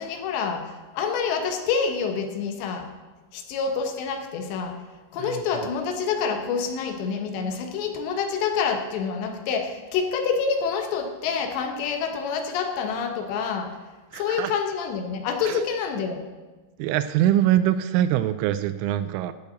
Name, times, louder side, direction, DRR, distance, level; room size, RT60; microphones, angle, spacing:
voice 1, 0.0-2.9 3.3-4.8 5.1-13.8 14.2-16.2, left 6 dB, 70° left, 5 dB, 2.9 m, -27 dB
voice 2, 14.1-14.5 15.5-15.6 16.8-19.3, right 12 dB, 85° right, 12 dB, 2.9 m, -23 dB
11.5 x 6.8 x 8.0 m, 1.2 s
omnidirectional pair, 5.8 m